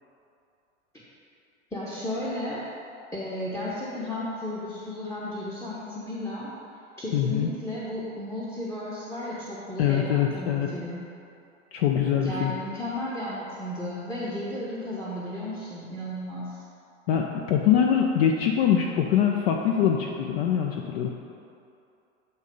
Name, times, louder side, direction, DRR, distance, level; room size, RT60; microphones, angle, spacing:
voice 1, 1.7-2.6 3.1-6.5 7.0-11.0 12.2-16.6, left 1 dB, 10° left, -7 dB, 0.8 m, -34 dB
voice 2, 7.1-7.5 9.8-10.7 11.7-12.5 17.1-21.1, left 8 dB, 55° left, 1 dB, 0.5 m, -23 dB
8.0 x 2.8 x 5.1 m, 2.6 s
figure-of-eight pair, 85°, 36 cm